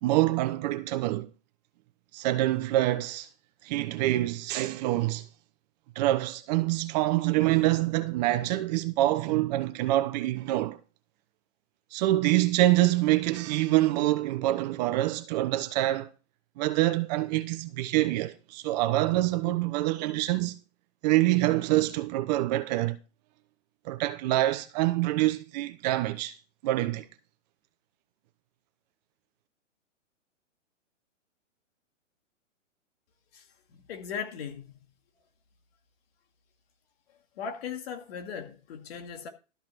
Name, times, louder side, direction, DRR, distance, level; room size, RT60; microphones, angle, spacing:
voice 1, 0.0-1.3 2.1-3.3 3.6-5.3 6.0-10.8 11.9-16.1 16.6-20.5 21.0-23.0 23.8-26.3 26.6-27.1, right 16 dB, 35° right, 0.9 m, -26 dB
voice 2, 33.3-34.8 37.4-39.3, left 7 dB, 50° left, 2.4 m, -38 dB
13.0 x 5.6 x 6.0 m
hypercardioid pair, 140°, 38 cm